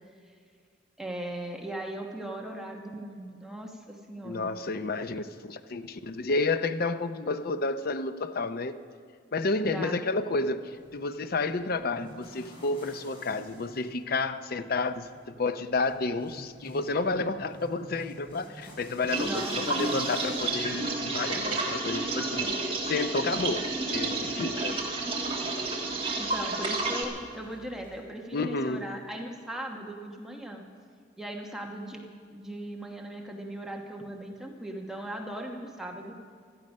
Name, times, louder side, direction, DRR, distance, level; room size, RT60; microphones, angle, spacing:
voice 1, 1.0-4.6 9.6-10.0 19.2-20.0 26.2-30.6 31.2-36.1, right 1 dB, 5° right, 1 dB, 1.1 m, -38 dB
voice 2, 4.2-8.8 9.3-15.1 15.4-24.8 28.3-28.8, left 3 dB, 55° left, 11 dB, 0.6 m, -30 dB
sound 1, 10.7-28.0, left 1 dB, 30° left, 4.0 m, -51 dB
sound 2, 19.1-27.0, right 3 dB, 30° right, 1.6 m, -30 dB
16.5 x 13.0 x 5.4 m, 2.1 s
head